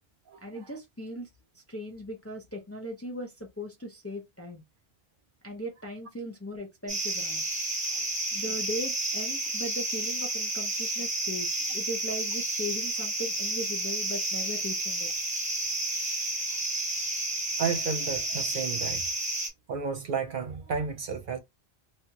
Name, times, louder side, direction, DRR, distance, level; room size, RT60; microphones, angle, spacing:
voice 1, 0.4-1.3 1.5-4.6 5.4-7.4 8.3-15.2, equal, 20° left, 0.5 m, -38 dB
sound 1, 6.9-19.5, right 2 dB, 10° right, 0.8 m, -31 dB
voice 2, 17.6-19.0 19.7-21.4, right 5 dB, 60° right, 0.7 m, -32 dB
3.0 x 2.4 x 2.8 m
omnidirectional pair, 1.1 m